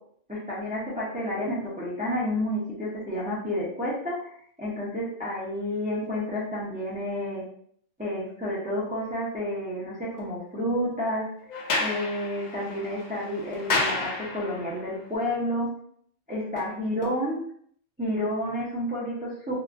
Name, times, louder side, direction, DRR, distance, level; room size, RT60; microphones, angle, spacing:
voice 1, 0.3-7.4 8.0-11.3 11.8-15.7 16.3-17.4 18.0-19.5, left 1 dB, 10° right, -7 dB, 0.4 m, -30 dB
Sliding door, 11.5-14.8, left 3 dB, 85° left, 0.4 m, -30 dB
2.7 x 2.4 x 2.4 m, 0.63 s
omnidirectional pair, 1.3 m